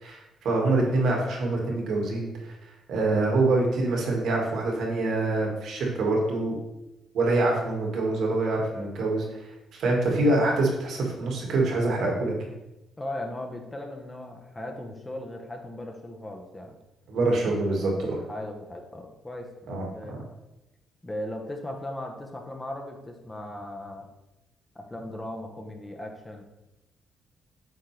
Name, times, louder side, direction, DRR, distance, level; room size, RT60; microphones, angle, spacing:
voice 1, 0.0-6.6 7.1-12.3 17.1-18.2 19.7-20.2, right 2 dB, 75° right, -1 dB, 2.1 m, -25 dB
voice 2, 13.0-16.8 17.9-20.2 21.0-24.1 24.7-26.4, left 1 dB, 15° left, 2 dB, 1.1 m, -38 dB
7.9 x 4.4 x 3.4 m, 0.95 s
cardioid pair, 90°, 0 cm